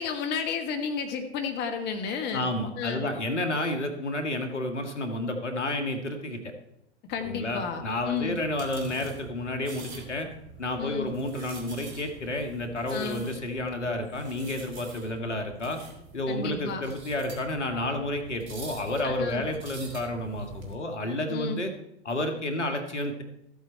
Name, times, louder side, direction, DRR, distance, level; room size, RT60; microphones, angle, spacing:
voice 1, 0.0-2.5 2.8-3.1 7.1-8.4 10.8-11.1 12.9-13.2 16.3-16.8 19.0-19.4 21.3-21.6, left 6 dB, 30° left, 5 dB, 1.2 m, -32 dB
voice 2, 2.3-6.4 7.2-10.3 10.6-15.8 16.1-21.7 22.0-23.2, left 1 dB, 80° left, 5 dB, 1.8 m, -31 dB
sound 1, 7.1-20.7, right 3 dB, 35° right, 2.7 m, -45 dB
13.5 x 8.0 x 4.4 m, 0.80 s
figure-of-eight pair, 100°, 35 cm